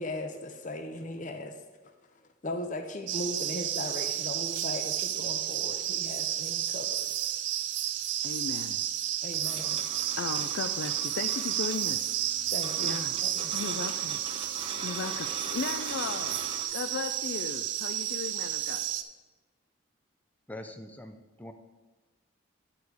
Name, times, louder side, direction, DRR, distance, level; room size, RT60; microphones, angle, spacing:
voice 1, 0.0-1.6 2.4-7.1 9.2-9.8 12.5-13.6, left 1 dB, 40° left, 5 dB, 0.7 m, -38 dB
sound 1, 3.1-19.0, right 11 dB, 70° right, 0.5 m, -32 dB
voice 2, 8.2-8.8 10.2-12.2 12.8-13.1 13.5-14.2 14.8-16.4 16.7-18.8, left 5 dB, 65° left, 8 dB, 0.4 m, -36 dB
sound 2, 9.4-16.6, right 4 dB, 25° right, 0.7 m, -42 dB
voice 3, 20.5-21.5, left 1 dB, 10° left, 6 dB, 0.4 m, -43 dB
10.5 x 5.0 x 4.7 m, 1.2 s
head